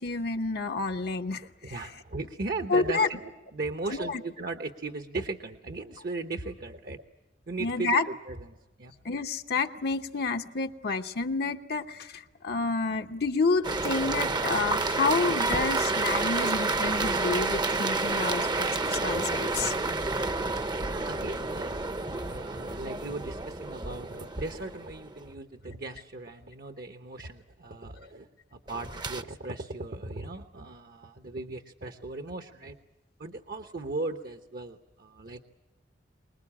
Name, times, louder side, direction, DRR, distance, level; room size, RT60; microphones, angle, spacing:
voice 1, 0.0-1.8 2.7-3.1 3.9-4.2 7.6-8.0 9.0-19.7, left 3 dB, 60° left, 5 dB, 0.9 m, -29 dB
voice 2, 1.6-7.0 7.5-8.5 8.8-8.9 20.7-28.3 28.5-32.8 33.2-35.5, right 3 dB, 50° right, 7 dB, 1.0 m, -37 dB
sound 1, 13.6-25.2 28.7-29.2, right 3 dB, 25° right, 0.8 m, -29 dB
25.0 x 20.5 x 8.6 m, 1.0 s
head